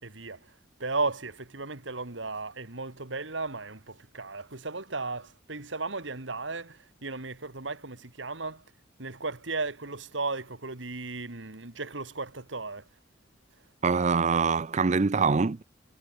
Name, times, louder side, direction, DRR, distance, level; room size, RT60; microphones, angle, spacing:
voice 1, 0.0-0.5 0.8-8.6 9.0-12.9, right 3 dB, 70° right, 2.4 m, -35 dB
voice 2, 13.8-15.6, right 5 dB, 35° right, 0.5 m, -24 dB
head